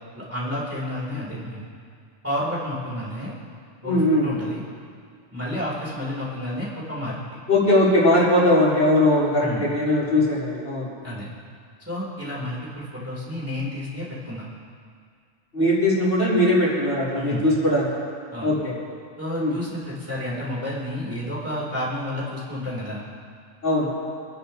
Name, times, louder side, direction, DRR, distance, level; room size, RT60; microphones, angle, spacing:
voice 1, 0.1-1.6 2.2-3.3 3.8-4.6 5.3-7.2 9.4-9.7 11.0-11.3 11.8-14.5 17.1-17.5 18.3-18.5 19.2-23.0, left 1 dB, 10° right, -7 dB, 2.9 m, -30 dB
voice 2, 3.8-4.3 7.5-10.9 15.5-17.9 18.4-18.7 19.4-19.5 23.6-23.9, left 1 dB, 55° left, -8 dB, 4.1 m, -20 dB
27.5 x 10.5 x 2.8 m, 2.2 s
omnidirectional pair, 1.3 m